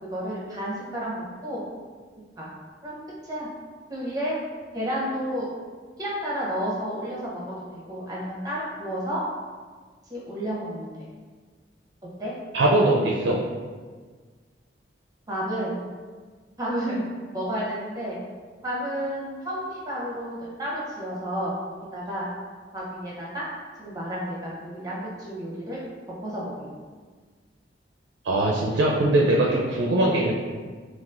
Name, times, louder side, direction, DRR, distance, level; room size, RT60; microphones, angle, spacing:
voice 1, 0.0-1.6 2.4-2.5 2.8-3.5 3.9-4.4 4.7-5.5 6.0-9.2 10.1-10.9 12.2-12.3 15.3-15.8 16.6-17.0 17.3-18.2 18.6-21.5 21.9-22.3 22.7-23.5 23.8-25.8 26.2-26.7, equal, 20° right, -5 dB, 0.8 m, -31 dB
voice 2, 12.5-13.4 28.2-30.3, right 1 dB, 85° right, -2 dB, 0.4 m, -21 dB
3.9 x 2.4 x 2.4 m, 1.5 s
head